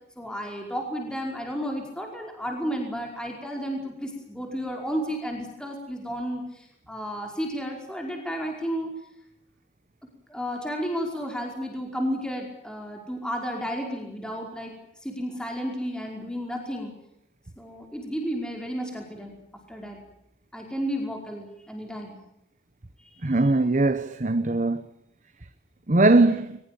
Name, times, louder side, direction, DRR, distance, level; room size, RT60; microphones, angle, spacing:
voice 1, 0.2-8.9 10.3-14.7 15.0-16.9 17.6-19.3 19.7-20.0 20.5-22.2, equal, 5° left, 5.1 m, -32 dB
voice 2, 23.2-24.9 25.9-26.6, right 2 dB, 45° right, 1.0 m, -20 dB
23.0 x 21.5 x 9.3 m
head